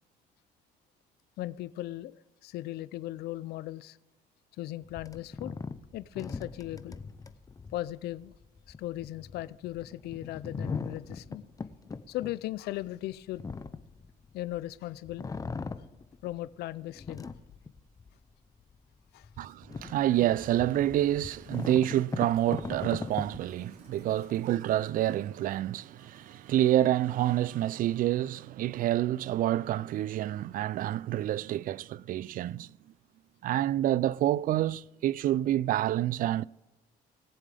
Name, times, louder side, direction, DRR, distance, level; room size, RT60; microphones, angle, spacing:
voice 1, 1.4-2.1 2.4-4.0 4.6-5.6 5.9-7.0 7.7-8.3 8.8-11.5 12.1-13.4 14.3-15.3 16.2-17.3 19.1-19.3, left 15 dB, 75° left, 0.5 m, -37 dB
sound 1, 4.8-14.7 15.0-16.5 16.9-18.2 18.7-18.8 19.2-24.3, left 4 dB, 20° left, 0.6 m, -40 dB
voice 2, 19.4-32.7 33.4-36.4, right 13 dB, 55° right, 0.4 m, -28 dB
sound 2, 21.1-28.2 28.5-28.6, right 2 dB, 40° right, 2.8 m, -61 dB
20.5 x 7.4 x 3.4 m
cardioid pair, 110°, 17 cm